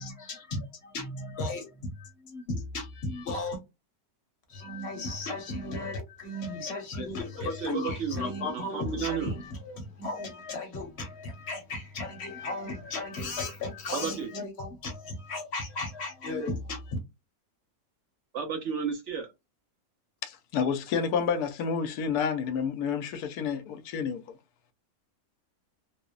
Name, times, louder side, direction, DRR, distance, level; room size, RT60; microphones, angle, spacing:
voice 1, 0.0-3.6 4.5-17.0, left 2 dB, 55° left, 0.9 m, -35 dB
voice 2, 7.4-9.3 13.9-14.3 18.3-19.3, right 6 dB, 65° right, 0.8 m, -33 dB
voice 3, 20.2-24.4, left 6 dB, 90° left, 1.1 m, -29 dB
2.9 x 2.0 x 2.3 m
omnidirectional pair, 1.6 m